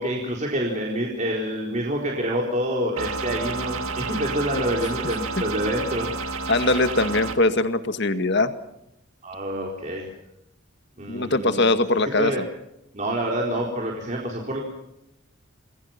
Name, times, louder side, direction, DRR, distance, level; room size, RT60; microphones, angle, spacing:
voice 1, 0.0-6.1 9.2-10.1 11.0-11.6 12.2-12.4 12.9-14.6, equal, 35° right, -1 dB, 4.3 m, -27 dB
sound 1, 3.0-7.4, right 4 dB, 75° right, 2.6 m, -30 dB
voice 2, 6.5-8.5 11.1-12.5, left 2 dB, 50° left, 10 dB, 2.0 m, -21 dB
28.5 x 21.5 x 6.0 m, 0.84 s
head